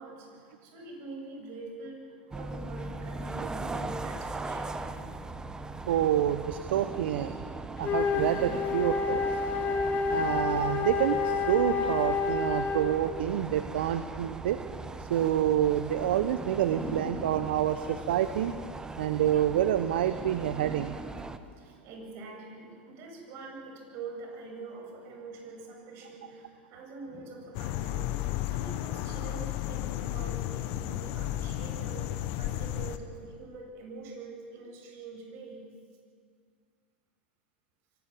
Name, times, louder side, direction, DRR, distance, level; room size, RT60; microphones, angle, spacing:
voice 1, 0.0-2.0 2.3-5.0 16.8-17.8 21.6-35.6, right 3 dB, 50° right, 1 dB, 7.7 m, -44 dB
sound 1, 2.3-21.4, right 3 dB, 10° right, 1.3 m, -39 dB
voice 2, 5.9-7.3 7.8-9.4 10.1-14.6 15.0-18.5 19.0-20.9, right 11 dB, 70° right, 11 dB, 0.9 m, -28 dB
Wind instrument woodwind instrument, 7.8-13.0, left 4 dB, 30° left, 3.0 m, -29 dB
sound 2, 27.5-33.0, left 13 dB, 55° left, 1.4 m, -33 dB
24.0 x 18.0 x 7.5 m, 2.1 s
hypercardioid pair, 95°, 6 cm